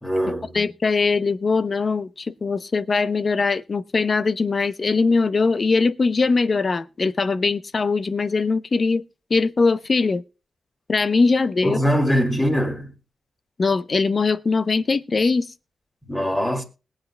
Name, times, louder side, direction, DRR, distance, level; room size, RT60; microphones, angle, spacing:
voice 1, 0.0-0.5 11.6-12.9 16.0-16.6, equal, 10° left, 2.3 m, -22 dB
voice 2, 0.5-9.0 9.3-10.2 10.9-11.8 13.6-15.5, left 4 dB, 35° left, 0.6 m, -21 dB
21.0 x 8.0 x 2.2 m
wide cardioid pair, 125°, 0 cm